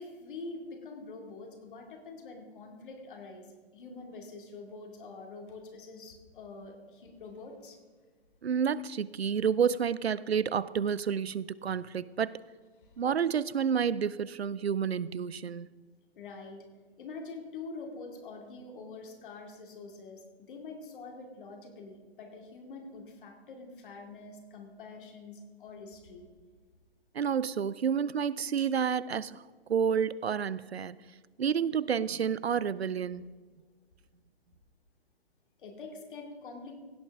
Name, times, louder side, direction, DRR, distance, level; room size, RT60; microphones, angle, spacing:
voice 1, 0.0-3.5 3.7-7.8 12.8-13.0 16.2-16.6 17.0-26.3 35.6-36.8, left 3 dB, 55° left, 3 dB, 2.4 m, -45 dB
voice 2, 8.4-12.3 13.0-15.7 27.1-29.4 29.7-31.0 31.4-33.3, right 7 dB, 85° right, 19 dB, 0.5 m, -29 dB
16.5 x 8.3 x 3.5 m, 1.5 s
figure-of-eight pair, 125°, 31 cm